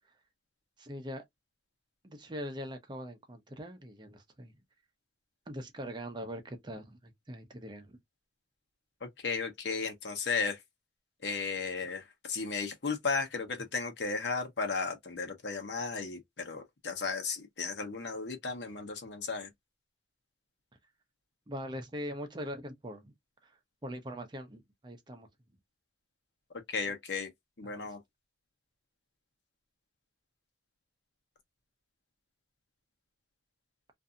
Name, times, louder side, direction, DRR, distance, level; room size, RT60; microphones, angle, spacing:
voice 1, 0.8-1.2 2.0-4.5 5.5-8.0 21.5-23.1 23.4-23.5 23.8-25.3 27.6-27.9, equal, 25° right, 0.6 m, -42 dB
voice 2, 9.0-10.6 11.2-19.5 26.7-27.3 27.6-28.0, left 4 dB, 75° left, 0.9 m, -35 dB
2.6 x 2.6 x 2.3 m
head